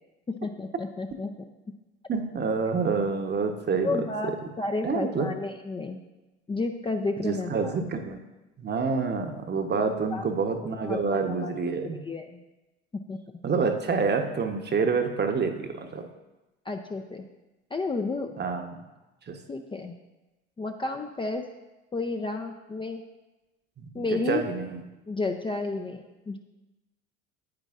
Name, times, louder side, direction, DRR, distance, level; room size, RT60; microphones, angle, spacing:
voice 1, 0.3-1.3 3.8-6.0 6.5-7.8 9.8-10.2 10.8-11.5 12.0-12.4 13.1-13.2 16.7-17.3 17.7-18.3 19.5-20.0 20.6-21.5 21.9-23.0 23.9-24.4 25.1-26.4, left 3 dB, 15° left, 4 dB, 0.5 m, -31 dB
voice 2, 2.1-4.0 4.8-5.3 7.2-8.2 8.6-12.0 13.4-16.1 18.4-18.8 19.3-19.4 23.8-24.8, right 5 dB, 30° right, 6 dB, 1.0 m, -27 dB
9.6 x 8.9 x 2.5 m, 1.1 s
hypercardioid pair, 65°, 34 cm